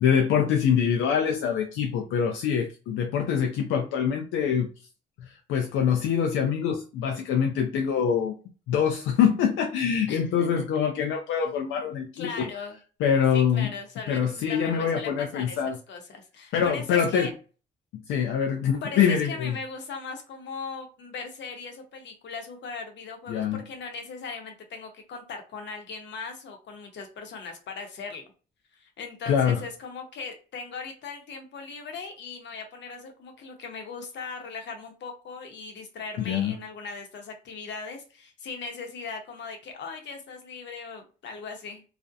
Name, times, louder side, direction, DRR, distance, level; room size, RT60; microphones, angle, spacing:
voice 1, 0.0-4.7 5.2-8.4 8.7-12.5 13.0-13.7 14.1-15.8 16.5-17.3 18.1-19.6 23.3-23.6 29.3-29.6 36.2-36.6, left 7 dB, 85° left, 0.4 m, -24 dB
voice 2, 10.1-10.6 12.1-12.8 13.3-17.3 18.8-28.2 28.7-41.8, left 4 dB, 65° left, 0.8 m, -39 dB
2.4 x 2.0 x 2.6 m
cardioid pair, 90°, 20 cm